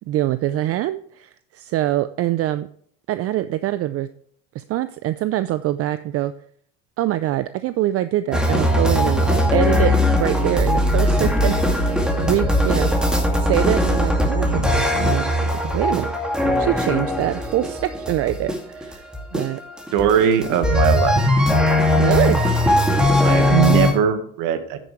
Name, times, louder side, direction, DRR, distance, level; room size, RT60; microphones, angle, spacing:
voice 1, 0.1-2.7 3.1-4.1 4.5-6.3 7.0-12.9 13.4-16.1 16.6-19.6 22.0-22.4, right 14 dB, 45° right, 13 dB, 0.5 m, -24 dB
sound 1, 8.3-23.9, left 1 dB, ahead, 2.3 m, -19 dB
voice 2, 19.9-21.2 23.2-24.8, right 9 dB, 70° right, 10 dB, 1.6 m, -19 dB
9.6 x 9.2 x 3.2 m, 0.62 s
supercardioid pair, 105°, 33 cm